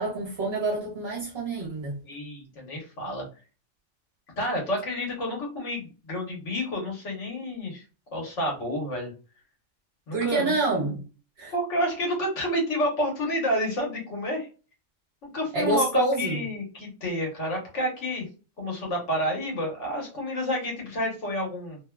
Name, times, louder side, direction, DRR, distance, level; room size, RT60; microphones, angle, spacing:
voice 1, 0.0-2.0 10.1-11.0 11.4-11.5 15.5-16.4, right 2 dB, 60° right, 1.1 m, -27 dB
voice 2, 2.0-3.3 4.4-7.8 8.1-9.1 10.1-11.0 11.5-14.5 15.2-18.3 18.6-21.8, equal, 75° left, 1.4 m, -29 dB
2.9 x 2.2 x 2.2 m
omnidirectional pair, 1.3 m